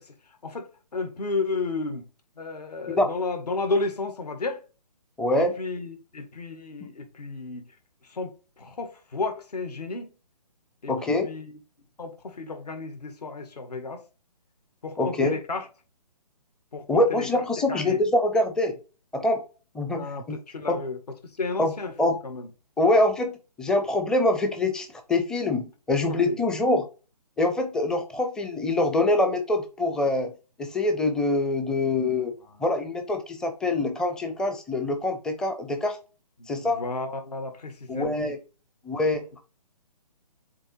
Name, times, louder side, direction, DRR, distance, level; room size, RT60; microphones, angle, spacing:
voice 1, 0.4-2.0 2.4-4.6 5.3-7.6 8.1-8.3 8.6-10.1 10.8-10.9 11.2-11.4 12.0-14.0 14.8-15.6 16.7-16.8 17.1-17.3 17.7-18.0 20.0-21.0 21.4-21.9 22.2-22.5 26.1-26.4 32.5-32.6 36.4-38.2, left 3 dB, 70° left, 1.9 m, -32 dB
voice 2, 5.2-5.5 6.8-6.9 10.9-11.3 15.0-15.4 16.9-18.8 19.1-19.4 19.7-20.4 20.7-20.8 21.6-21.7 22.0-22.2 22.8-23.3 23.6-26.9 27.4-30.3 30.6-32.3 32.6-36.0 36.5-36.8 37.9-38.4 38.8-39.4, left 2 dB, 5° left, 0.5 m, -24 dB
7.4 x 3.0 x 4.6 m
figure-of-eight pair, 140°, 21 cm